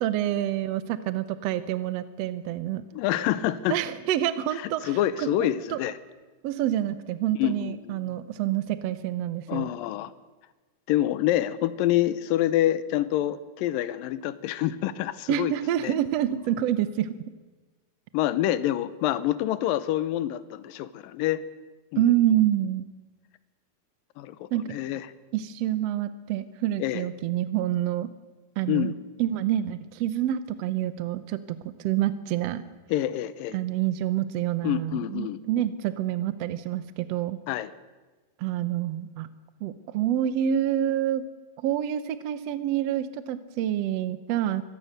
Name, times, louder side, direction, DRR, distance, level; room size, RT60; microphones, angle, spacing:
voice 1, 0.0-2.8 3.7-5.8 6.4-9.7 15.3-17.1 22.0-22.9 24.5-24.7 25.3-28.1 28.6-28.9 29.2-32.6 33.5-37.4 38.4-39.3 39.6-41.2 41.6-44.7, right 12 dB, 75° right, 12 dB, 1.5 m, -27 dB
voice 2, 2.9-3.8 4.5-6.0 7.4-8.1 9.5-10.1 10.9-15.5 15.8-15.9 18.1-21.4 21.9-22.1 24.2-25.1 26.8-27.1 28.7-28.9 32.9-33.6 34.6-35.4 37.5-37.7, left 13 dB, 85° left, 14 dB, 2.5 m, -27 dB
25.0 x 18.5 x 6.6 m, 1.3 s
omnidirectional pair, 4.0 m